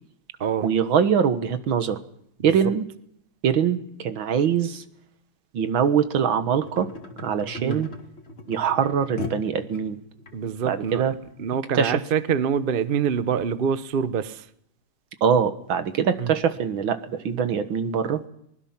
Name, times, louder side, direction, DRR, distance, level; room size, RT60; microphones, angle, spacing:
voice 1, 0.6-2.0 2.4-2.9 3.4-4.8 5.5-6.9 7.2-7.9 8.5-10.0 10.7-11.1 11.7-12.0 15.2-18.2, right 7 dB, 75° right, 10 dB, 2.1 m, -23 dB
sound 1, 6.5-10.3 11.0-11.1, left 4 dB, 30° left, 2.1 m, -38 dB
voice 2, 10.3-11.1 11.4-14.4 16.2-16.3, right 7 dB, 50° right, 13 dB, 0.6 m, -25 dB
23.5 x 20.0 x 5.9 m, 0.72 s
omnidirectional pair, 2.2 m